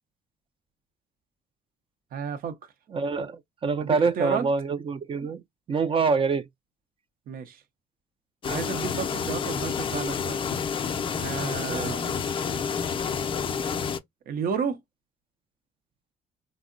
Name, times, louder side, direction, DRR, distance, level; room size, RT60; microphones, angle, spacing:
voice 1, 2.1-2.7 3.8-4.5 7.3-7.6 8.4-10.4 11.2-12.2 14.3-14.8, right 7 dB, 60° right, 0.7 m, -32 dB
voice 2, 2.9-5.4 5.7-6.4 11.7-12.0, right 4 dB, 30° right, 0.4 m, -26 dB
sound 1, 8.4-14.0, left 6 dB, 30° left, 0.4 m, -29 dB
3.5 x 2.0 x 2.4 m
cardioid pair, 110°, 17 cm